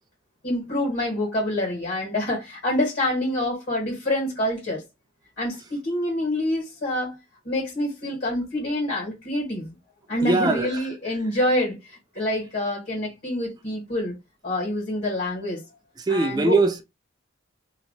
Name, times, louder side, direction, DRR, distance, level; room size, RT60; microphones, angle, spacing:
voice 1, 0.4-4.8 5.4-7.2 7.4-9.8 10.1-14.2 14.4-15.6 16.1-16.6, left 1 dB, 45° left, 1.5 m, -26 dB
voice 2, 10.2-10.9 11.4-11.5 16.0-16.8, right 3 dB, 20° right, 0.3 m, -22 dB
2.8 x 2.4 x 3.8 m
head